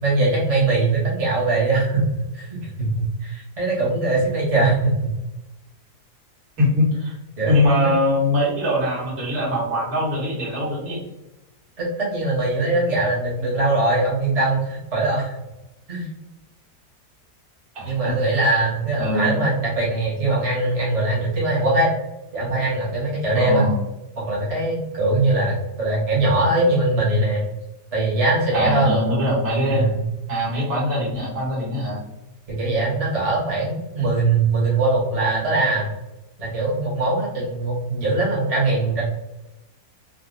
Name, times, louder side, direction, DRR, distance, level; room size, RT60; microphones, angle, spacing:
voice 1, 0.0-2.1 2.3-5.0 7.4-7.9 11.8-15.4 15.9-16.1 17.8-21.9 22.3-23.6 24.3-27.4 27.9-28.9 29.7-29.9 32.5-35.9 36.4-39.0, right 2 dB, 25° right, -7 dB, 0.9 m, -21 dB
voice 2, 6.6-7.2 7.4-11.0 17.8-18.1 19.0-19.3 23.4-23.8 28.5-29.9 30.3-32.0, left 1 dB, 65° right, -5 dB, 2.0 m, -22 dB
3.8 x 2.5 x 2.4 m, 0.97 s
omnidirectional pair, 1.8 m